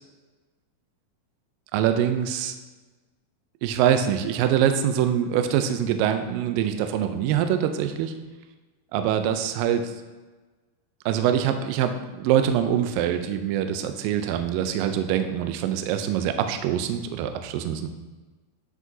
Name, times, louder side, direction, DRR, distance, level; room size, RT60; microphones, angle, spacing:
voice 1, 1.7-2.5 3.6-8.1 8.9-9.9 11.1-17.9, right 9 dB, 80° right, 7 dB, 2.1 m, -24 dB
9.6 x 5.0 x 2.7 m, 1.3 s
omnidirectional pair, 4.4 m